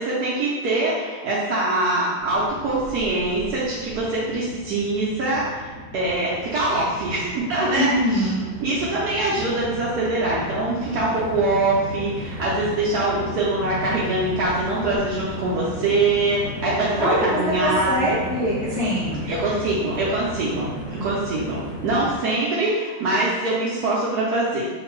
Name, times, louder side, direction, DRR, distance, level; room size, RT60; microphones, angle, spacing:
voice 1, 0.0-8.3 8.6-18.2 19.3-24.7, right 2 dB, 70° right, -7 dB, 1.0 m, -23 dB
Train, 2.2-22.2, equal, 90° right, 1.3 m, -35 dB
voice 2, 7.7-8.5 17.0-17.3 17.6-19.3, equal, ahead, -11 dB, 1.0 m, -23 dB
2.9 x 2.5 x 3.1 m, 1.3 s
omnidirectional pair, 1.9 m